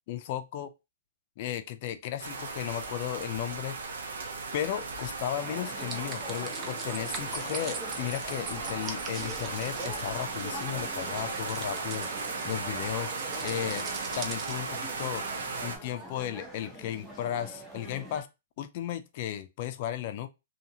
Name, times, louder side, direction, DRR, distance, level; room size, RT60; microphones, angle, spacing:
voice 1, 0.1-0.7 1.4-4.0 4.5-13.1 13.4-13.9 14.1-15.2 15.6-18.3 18.6-20.3, left 11 dB, 50° left, 0.4 m, -35 dB
sound 1, 2.2-15.8, right 4 dB, 85° right, 0.6 m, -36 dB
sound 2, 5.4-18.2, right 1 dB, 5° right, 0.9 m, -44 dB
sound 3, 5.8-15.1, right 5 dB, 30° right, 0.6 m, -43 dB
2.8 x 2.6 x 2.7 m
hypercardioid pair, 135°, 0 cm